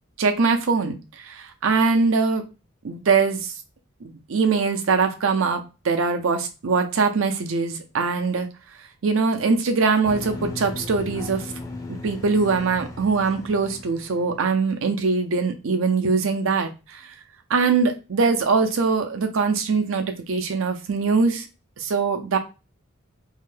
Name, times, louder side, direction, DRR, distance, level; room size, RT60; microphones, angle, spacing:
voice 1, 0.2-2.4 2.8-3.5 4.3-8.5 9.0-11.5 11.9-17.1 17.5-21.4 21.8-22.4, right 4 dB, 80° right, 6 dB, 0.6 m, -22 dB
sound 1, 10.0-14.5, left 2 dB, 20° left, 0.5 m, -36 dB
2.7 x 2.1 x 3.2 m, 0.29 s
head